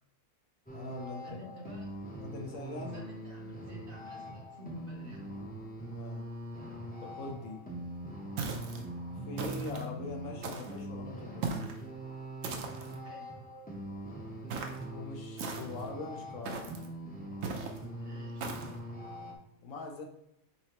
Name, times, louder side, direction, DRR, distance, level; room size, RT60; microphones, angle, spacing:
voice 1, 0.7-1.5 2.2-3.0 5.9-6.2 7.0-7.6 9.3-11.7 14.9-16.6 19.6-20.0, left 3 dB, 70° left, 2 dB, 1.1 m, -42 dB
sound 1, 0.7-19.3, right 1 dB, 10° left, 0.5 m, -43 dB
voice 2, 1.2-1.9 2.9-5.2 13.0-13.3 17.9-18.6, left 1 dB, 50° right, -1 dB, 0.7 m, -50 dB
sound 2, 8.4-8.8 9.4-9.9 10.4-10.8 11.4-11.8 12.4-13.0 14.5-14.8 15.4-15.9 16.5-16.9 17.4-17.8 18.4-18.8, right 4 dB, 70° right, 1.0 m, -38 dB
4.3 x 3.9 x 2.9 m, 0.76 s
omnidirectional pair, 1.5 m